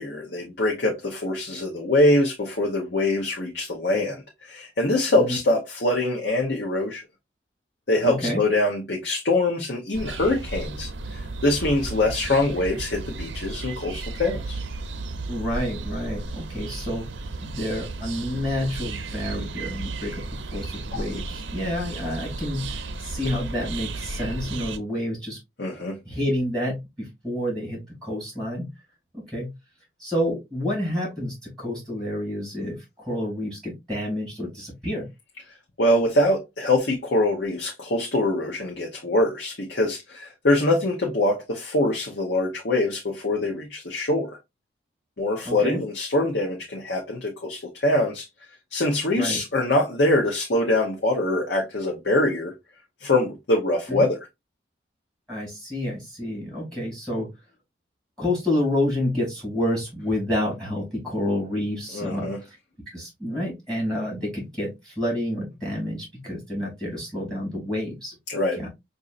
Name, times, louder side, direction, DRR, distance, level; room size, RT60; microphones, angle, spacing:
voice 1, 0.0-7.0 7.9-14.6 25.6-26.0 35.8-44.4 45.2-48.3 48.7-52.5 53.0-54.2 61.9-62.4 68.3-68.6, left 1 dB, 65° left, 0.9 m, -24 dB
voice 2, 8.0-8.4 15.3-17.1 17.4-25.4 26.0-28.7 29.1-29.5 30.0-35.1 45.4-45.8 49.1-49.4 53.9-54.1 55.3-57.3 58.2-62.6 62.9-68.1 68.6-68.7, left 1 dB, 5° left, 2.4 m, -29 dB
sound 1, 9.9-24.8, right 3 dB, 85° right, 0.6 m, -34 dB
6.1 x 2.7 x 2.5 m
head